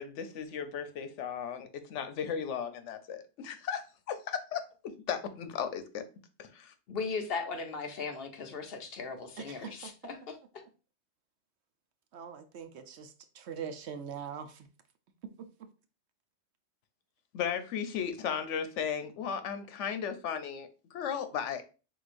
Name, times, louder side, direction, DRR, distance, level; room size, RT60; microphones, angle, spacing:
voice 1, 0.0-6.0 6.4-6.7 17.3-21.6, left 7 dB, 90° left, 1.0 m, -36 dB
voice 2, 6.9-10.4, left 4 dB, 60° left, 0.9 m, -37 dB
voice 3, 9.4-9.7 12.1-14.7 15.4-15.5, right 7 dB, 70° right, 0.9 m, -42 dB
4.9 x 3.8 x 2.5 m
omnidirectional pair, 1.2 m